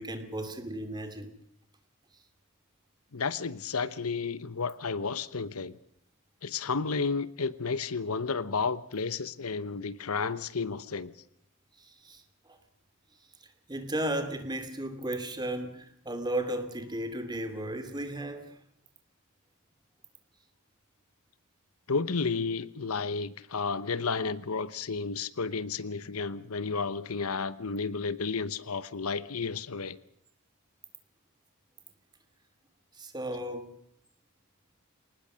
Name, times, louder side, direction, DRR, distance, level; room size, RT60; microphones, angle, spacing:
voice 1, 0.0-1.3 11.8-12.6 13.7-18.6 33.0-33.7, right 1 dB, 20° right, 2.7 m, -35 dB
voice 2, 3.1-5.8 6.4-11.1 21.9-30.0, left 4 dB, 85° left, 1.0 m, -32 dB
24.5 x 19.5 x 6.4 m
head